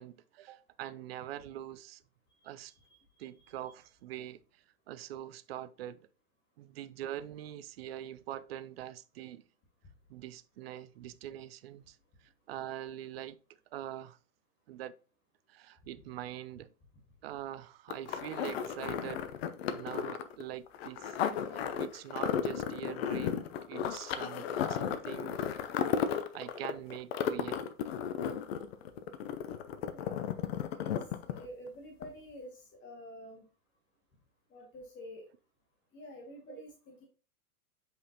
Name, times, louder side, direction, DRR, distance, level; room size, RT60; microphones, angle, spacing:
voice 1, 0.0-2.0 2.4-2.7 3.2-6.1 6.6-9.4 10.1-12.0 12.2-13.4 13.7-14.2 14.7-15.0 15.5-16.7 17.2-19.2 19.7-25.4 26.3-27.7 36.5-36.6, right 12 dB, 45° right, 0.6 m, -44 dB
voice 2, 2.3-3.5 29.9-30.4 30.8-33.5 34.5-35.3 35.9-37.1, equal, 25° left, 1.9 m, -49 dB
sound 1, 17.9-31.7 32.0-32.1, left 8 dB, 45° left, 0.8 m, -34 dB
7.6 x 5.3 x 2.8 m
figure-of-eight pair, 100°, 45 cm